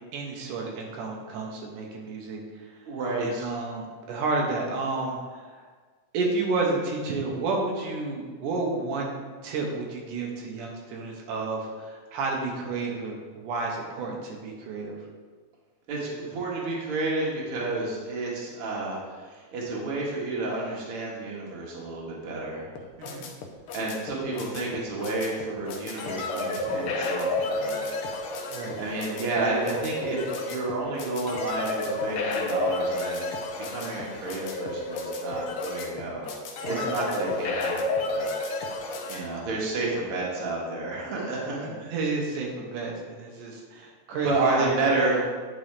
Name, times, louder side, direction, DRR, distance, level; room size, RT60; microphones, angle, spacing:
voice 1, 0.1-2.6 3.2-5.6 6.1-15.0 23.0-23.3 26.7-26.9 28.5-28.7 36.6-36.9 41.5-44.9, right 3 dB, 85° right, -1 dB, 2.6 m, -31 dB
voice 2, 2.9-3.5 15.9-22.7 23.7-27.9 28.8-33.3 33.7-36.3 36.6-38.3 39.1-41.9 44.2-45.2, right 2 dB, 50° right, -4 dB, 2.1 m, -30 dB
sound 1, 22.7-39.2, left 2 dB, 85° left, 1.2 m, -31 dB
9.9 x 5.4 x 3.4 m, 1.5 s
omnidirectional pair, 3.6 m